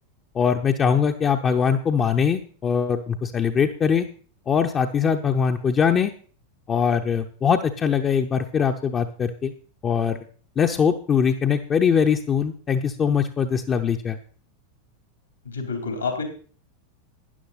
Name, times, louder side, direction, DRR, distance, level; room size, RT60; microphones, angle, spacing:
voice 1, 0.3-4.1 4.5-6.1 6.7-9.5 9.8-10.2 10.6-14.2, left 7 dB, 25° left, 4 dB, 0.8 m, -22 dB
voice 2, 15.4-16.2, left 4 dB, 80° left, 5 dB, 3.2 m, -28 dB
12.5 x 9.9 x 4.1 m, 0.42 s
figure-of-eight pair, 90°, 0 cm